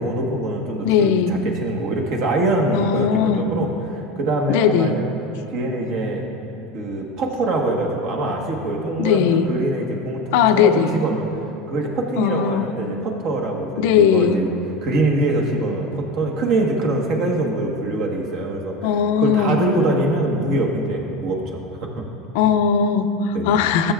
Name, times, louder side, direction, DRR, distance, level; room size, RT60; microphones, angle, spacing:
voice 1, 0.0-5.1 5.5-6.2 6.7-10.2 10.5-11.3 11.7-14.5 14.8-18.9 19.2-22.0 23.3-23.6, right 2 dB, 60° right, 1 dB, 1.3 m, -23 dB
voice 2, 0.8-1.4 2.7-3.5 4.5-4.9 9.0-9.5 10.3-10.9 12.2-12.7 13.8-14.4 18.8-19.6 22.3-23.9, left 7 dB, 75° left, 9 dB, 0.4 m, -18 dB
14.5 x 6.9 x 2.5 m, 2.8 s
supercardioid pair, 115°, 0 cm